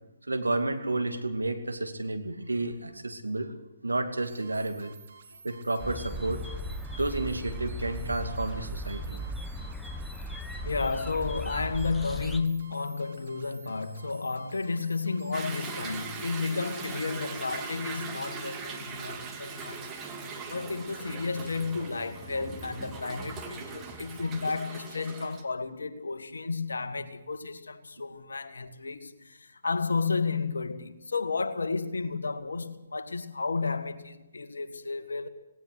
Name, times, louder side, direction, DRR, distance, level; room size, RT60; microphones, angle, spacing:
voice 1, 0.3-3.5 3.8-4.9 5.4-6.4 7.0-9.2 24.2-24.3, right 2 dB, 85° right, 2.6 m, -31 dB
sound 1, 4.2-20.0, right 6 dB, 60° right, 4.2 m, -54 dB
sound 2, 5.8-12.4, equal, 5° left, 1.2 m, -37 dB
voice 2, 10.7-19.9 20.5-35.3, left 4 dB, 75° left, 1.9 m, -32 dB
Toilet flush / Drip / Trickle dribble, 15.3-25.4, right 4 dB, 20° right, 2.5 m, -40 dB
18.0 x 18.0 x 8.2 m
figure-of-eight pair, 135°, 0 cm